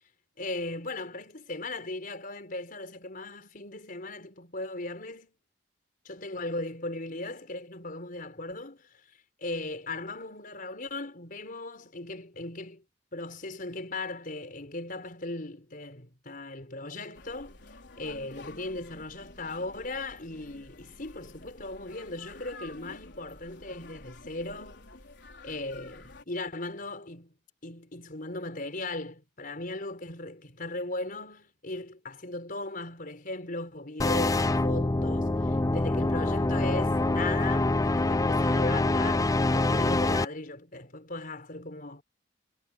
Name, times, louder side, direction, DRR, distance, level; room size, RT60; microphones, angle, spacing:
voice 1, 0.4-5.3 6.1-9.0 9.4-12.8 13.1-17.5 18.0-24.9 25.4-27.3 27.6-42.0, left 2 dB, 50° left, 5.2 m, -38 dB
sound 1, 17.1-26.2, left 2 dB, 65° left, 4.8 m, -50 dB
sound 2, 34.0-40.2, left 2 dB, 20° left, 0.5 m, -25 dB
head